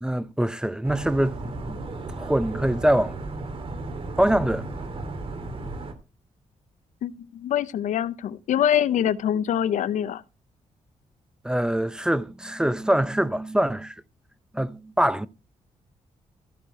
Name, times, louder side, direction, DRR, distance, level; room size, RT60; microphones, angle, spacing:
voice 1, 0.0-1.8 2.2-3.2 4.2-4.7 11.4-13.9 14.5-15.3, right 1 dB, 5° right, 0.6 m, -24 dB
sound 1, 0.8-5.9, right 2 dB, 45° right, 2.6 m, -34 dB
voice 2, 7.0-10.2, left 10 dB, 80° left, 0.7 m, -24 dB
15.5 x 6.5 x 4.1 m
cardioid pair, 100°, 13 cm